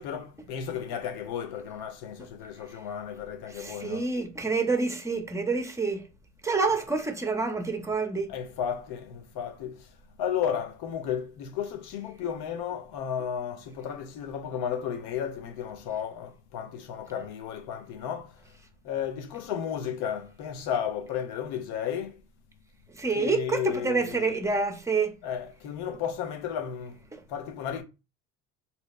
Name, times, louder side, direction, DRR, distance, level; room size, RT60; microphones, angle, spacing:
voice 1, 0.0-4.1 8.3-18.4 18.8-22.2 23.1-24.6 25.2-27.0 27.3-27.8, left 8 dB, 70° left, 0.8 m, -33 dB
voice 2, 3.6-6.1 6.4-8.3 22.9-25.1, right 4 dB, 10° right, 0.7 m, -27 dB
2.9 x 2.1 x 4.1 m
supercardioid pair, 75°, 40 cm